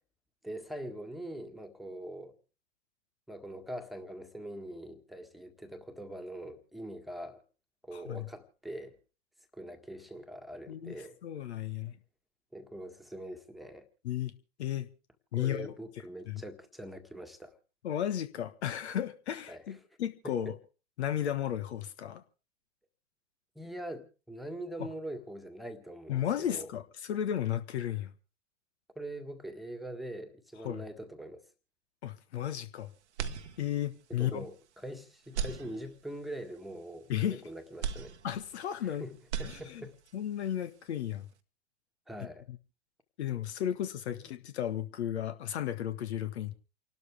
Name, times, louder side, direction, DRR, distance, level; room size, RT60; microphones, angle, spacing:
voice 1, 0.4-2.3 3.3-7.4 7.8-9.0 9.5-11.2 12.5-13.9 15.3-17.6 19.5-19.8 20.2-20.5 23.5-26.7 28.9-31.4 34.1-38.1 38.8-39.9 42.1-42.4 44.1-44.3, right 1 dB, ahead, 6 dB, 1.6 m, -43 dB
voice 2, 7.9-8.3 10.7-11.0 11.2-12.0 14.0-14.3 14.6-14.9 15.3-15.7 16.3-16.4 17.8-20.6 21.0-22.2 24.8-24.9 26.1-26.8 27.1-28.1 30.6-30.8 32.0-32.9 33.6-34.5 37.1-37.4 38.2-39.1 39.4-39.8 40.1-41.3 42.5-42.6 43.2-46.5, left 10 dB, 65° left, 10 dB, 1.4 m, -34 dB
sound 1, 33.1-34.1 34.5-34.6 35.2-36.3 37.8-38.9 39.2-40.1, right 7 dB, 70° right, 1.3 m, -38 dB
29.0 x 12.5 x 3.4 m, 0.35 s
hypercardioid pair, 100°, 35 cm